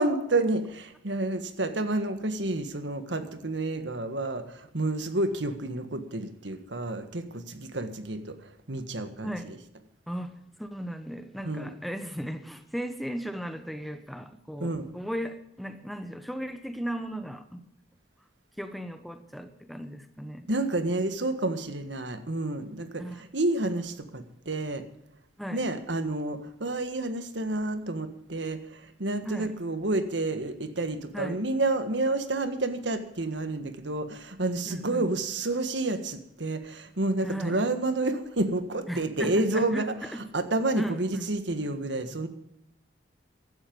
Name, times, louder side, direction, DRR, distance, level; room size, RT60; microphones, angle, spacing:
voice 1, 0.0-9.6 11.4-11.7 14.6-14.9 20.5-24.8 25.5-42.3, right 2 dB, 75° right, 9 dB, 1.6 m, -30 dB
voice 2, 10.1-17.7 18.6-20.5 23.0-23.2 25.4-25.6 29.2-29.5 31.1-31.4 34.7-35.1 37.2-37.6 38.9-40.2 40.7-41.3, equal, ahead, 8 dB, 1.0 m, -36 dB
15.5 x 12.0 x 5.3 m, 0.77 s
head